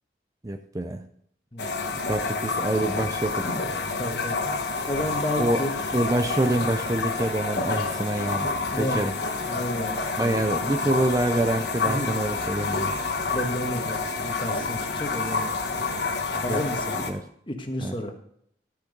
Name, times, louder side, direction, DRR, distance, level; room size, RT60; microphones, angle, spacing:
voice 1, 0.4-1.0 2.1-3.5 5.4-5.6 5.9-9.1 10.2-12.9 16.3-16.6 17.1-17.2 17.8-17.9, right 1 dB, 20° right, 8 dB, 0.5 m, -26 dB
voice 2, 1.5-2.0 3.4-3.6 4.0-5.7 8.7-9.0 9.5-10.0 11.8-12.1 13.3-15.6 16.4-17.0 17.5-18.1, left 1 dB, 25° left, 4 dB, 1.4 m, -32 dB
sound 1, 1.6-17.1, left 3 dB, 70° left, 1.3 m, -28 dB
12.5 x 6.7 x 5.2 m, 0.66 s
head